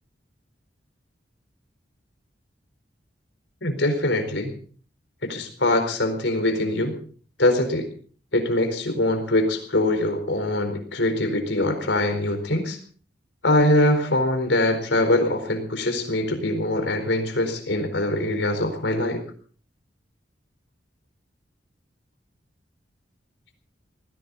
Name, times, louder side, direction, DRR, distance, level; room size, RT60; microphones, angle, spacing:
voice 1, 3.6-4.6 5.2-6.9 7.4-7.8 8.3-12.8 13.4-19.2, left 1 dB, 85° left, 7 dB, 4.5 m, -23 dB
20.0 x 16.0 x 4.2 m, 0.43 s
head